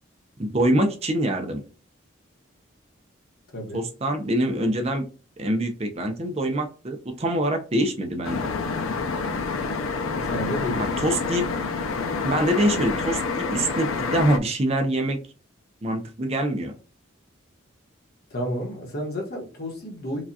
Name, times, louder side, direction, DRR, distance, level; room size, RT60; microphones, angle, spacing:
voice 1, 0.4-1.6 3.7-5.0 5.4-8.5 11.0-11.4 12.2-15.2 15.8-16.7, right 1 dB, 30° right, 4 dB, 0.5 m, -24 dB
voice 2, 3.5-3.8 10.3-10.8 18.3-20.2, equal, 50° left, 0 dB, 1.1 m, -31 dB
sound 1, 8.2-14.4, left 4 dB, 90° left, 0.5 m, -27 dB
4.8 x 2.3 x 2.7 m, 0.36 s
head